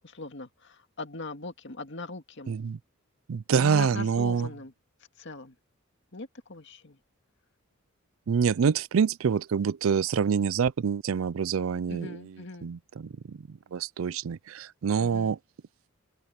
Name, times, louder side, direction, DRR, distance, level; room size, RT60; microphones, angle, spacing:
voice 1, 0.0-2.6 3.5-4.7 5.2-5.5 6.1-7.0 11.9-12.7 15.0-15.3, left 3 dB, 60° left, 2.0 m, -40 dB
voice 2, 2.5-2.8 3.3-4.5 8.3-12.2 12.6-15.4, right 6 dB, 75° right, 0.4 m, -26 dB
open air
head